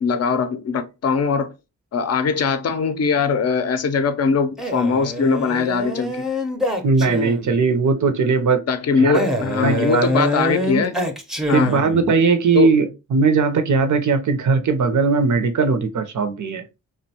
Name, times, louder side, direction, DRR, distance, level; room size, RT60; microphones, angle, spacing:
voice 1, 0.0-1.5 1.9-6.3 8.7-11.0 11.5-11.9 12.5-12.7, left 5 dB, 50° left, 0.5 m, -21 dB
Male speech man speaking, 4.6-7.6 9.1-12.1, left 1 dB, ahead, 0.6 m, -25 dB
voice 2, 6.8-8.6 9.0-9.2 9.6-10.2 11.5-16.6, right 4 dB, 60° right, 0.6 m, -19 dB
2.5 x 2.2 x 2.7 m
cardioid pair, 45°, 33 cm